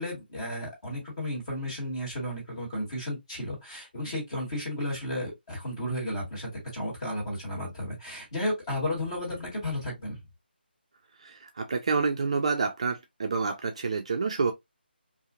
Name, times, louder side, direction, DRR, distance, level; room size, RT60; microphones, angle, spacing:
voice 1, 0.0-10.2, left 1 dB, 30° left, 1.8 m, -33 dB
voice 2, 11.2-14.5, right 4 dB, 35° right, 0.3 m, -28 dB
2.7 x 2.5 x 2.4 m
figure-of-eight pair, 170°, 6 cm